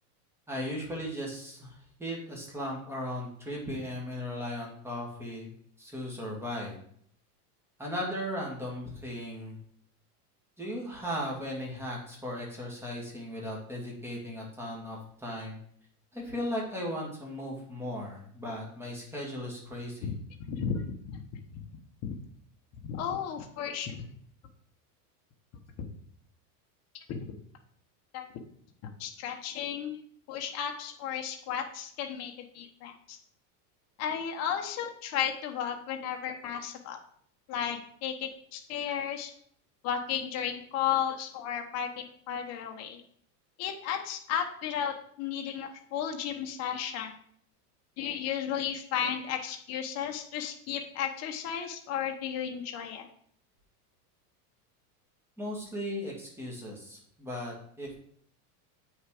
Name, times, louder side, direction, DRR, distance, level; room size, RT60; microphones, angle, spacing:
voice 1, 0.5-5.5 5.8-6.7 7.8-9.6 10.6-15.6 16.1-20.1 55.4-58.0, equal, 5° right, -3 dB, 2.3 m, -37 dB
voice 2, 20.5-21.2 22.0-22.1 22.9-24.1 27.1-27.2 28.1-28.2 29.0-30.0 30.3-33.2 34.0-37.0 37.5-39.3 39.8-41.9 42.3-43.0 43.6-47.1 48.0-53.1, left 8 dB, 35° left, 3 dB, 1.1 m, -34 dB
8.0 x 6.5 x 4.9 m, 0.63 s
supercardioid pair, 160°, 47 cm